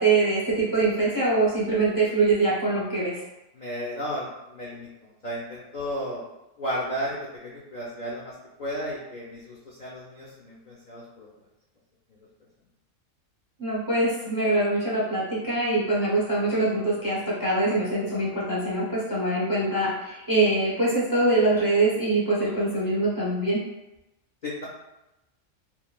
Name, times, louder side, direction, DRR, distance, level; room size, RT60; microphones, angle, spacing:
voice 1, 0.0-3.2 13.6-23.6, right 2 dB, 25° right, -7 dB, 0.5 m, -24 dB
voice 2, 3.5-6.2 6.6-8.3 8.6-11.3 24.4-24.6, equal, 55° left, -5 dB, 0.5 m, -34 dB
3.1 x 2.5 x 2.2 m, 0.94 s
omnidirectional pair, 1.4 m